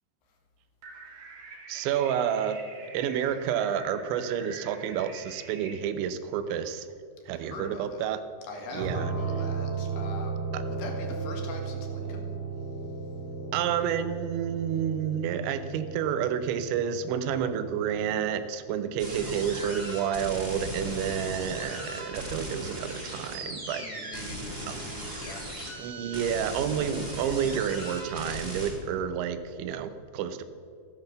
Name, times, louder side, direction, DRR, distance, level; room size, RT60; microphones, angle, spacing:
sound 1, 0.8-5.7, right 4 dB, 60° right, 3.8 m, -46 dB
voice 1, 1.7-2.6 2.9-6.9 7.3-8.2 8.7-9.1 10.5-10.6 13.5-24.1 24.7-24.8 25.8-30.4, right 8 dB, 90° right, 11 dB, 3.2 m, -30 dB
voice 2, 7.3-8.0 8.5-10.4 10.7-12.3 23.8-25.9, left 2 dB, 70° left, 2 dB, 3.7 m, -42 dB
sound 2, 8.8-18.3, right 4 dB, 35° right, 2.8 m, -35 dB
sound 3, 19.0-28.7, right 1 dB, 15° right, 2.9 m, -37 dB
14.5 x 10.5 x 6.7 m, 2.4 s
omnidirectional pair, 5.2 m